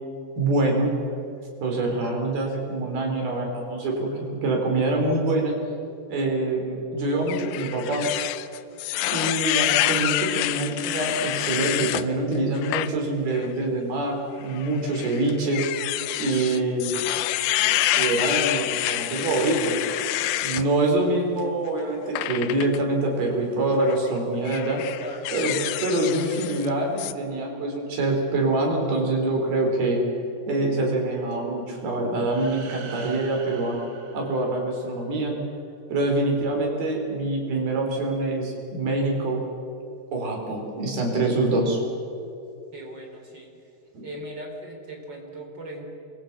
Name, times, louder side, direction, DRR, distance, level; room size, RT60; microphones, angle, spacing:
voice 1, 0.4-1.0 1.6-5.6 6.1-8.1 9.1-15.7 16.2-16.9 17.6-19.8 20.4-24.8 25.3-30.0 30.5-33.8 34.1-35.4 35.9-39.4 40.1-41.8 43.9-44.1, right 2 dB, 60° right, 1 dB, 5.9 m, -25 dB
sound 1, 7.3-12.1 12.6-12.9 13.3-13.5 14.5-20.7 22.2-22.8 23.7-24.0 24.5-26.7 27.0-27.1, left 15 dB, 75° left, 2.5 m, -27 dB
voice 2, 25.0-25.3 42.7-43.5 44.0-45.9, right 1 dB, 25° right, 1 dB, 3.9 m, -38 dB
sound 2, 32.1-35.1, right 6 dB, 45° right, 2.0 m, -44 dB
27.0 x 22.5 x 6.1 m, 2.8 s
omnidirectional pair, 4.9 m